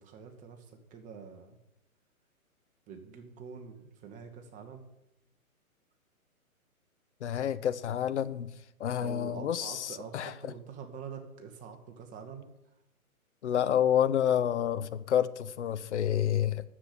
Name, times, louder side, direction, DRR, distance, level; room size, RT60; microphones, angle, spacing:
voice 1, 0.0-1.6 2.9-4.9 9.0-12.5, right 6 dB, 20° right, 5 dB, 1.3 m, -45 dB
voice 2, 7.2-8.5 8.8-10.3 13.4-16.6, left 9 dB, 50° left, 14 dB, 0.9 m, -29 dB
10.0 x 7.6 x 8.2 m, 0.86 s
hypercardioid pair, 135°, 43 cm